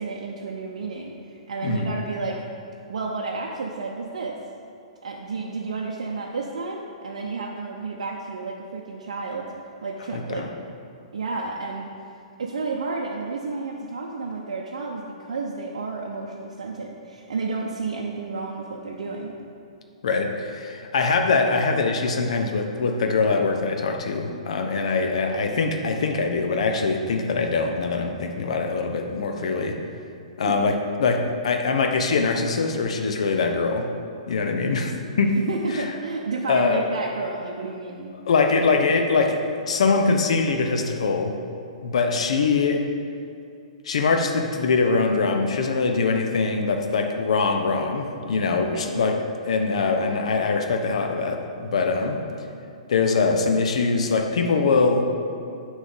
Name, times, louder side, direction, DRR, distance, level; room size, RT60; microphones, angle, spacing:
voice 1, 0.0-2.4 2.9-4.4 5.0-9.5 9.8-10.5 11.1-11.9 12.4-19.4 30.4-30.6 35.4-38.1 48.5-49.0, right 3 dB, 65° right, -2 dB, 0.7 m, -31 dB
voice 2, 10.1-10.5 20.0-29.8 30.4-33.9 34.3-35.4 35.7-35.9 36.5-36.8 38.3-41.4 41.8-42.8 43.8-49.2 49.4-52.2 52.9-55.0, left 4 dB, 60° left, 4 dB, 0.8 m, -23 dB
9.6 x 3.2 x 5.3 m, 2.5 s
figure-of-eight pair, 120°, 4 cm